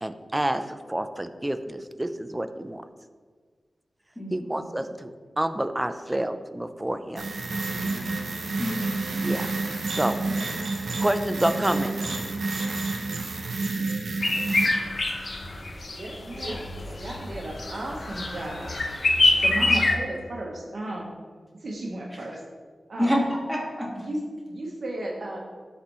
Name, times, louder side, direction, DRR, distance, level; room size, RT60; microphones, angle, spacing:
voice 1, 0.0-2.8 4.3-5.1 5.4-7.2 9.2-9.5 9.9-10.2 11.0-12.1, right 1 dB, 20° right, 9 dB, 0.6 m, -28 dB
voice 2, 4.2-4.6 7.7-8.1 8.6-9.0 10.1-10.5 23.0-23.2 23.5-23.9, equal, ahead, -3 dB, 2.0 m, -29 dB
sound 1, 7.2-14.7, right 3 dB, 85° right, 1.0 m, -29 dB
sound 2, 14.2-20.0, left 2 dB, 55° left, 0.9 m, -25 dB
voice 3, 15.9-18.7 19.4-21.1 21.6-22.4 22.9-23.1 24.0-25.4, right 1 dB, 65° right, -2 dB, 1.2 m, -34 dB
12.5 x 4.3 x 3.1 m, 1.5 s
cardioid pair, 50°, 0 cm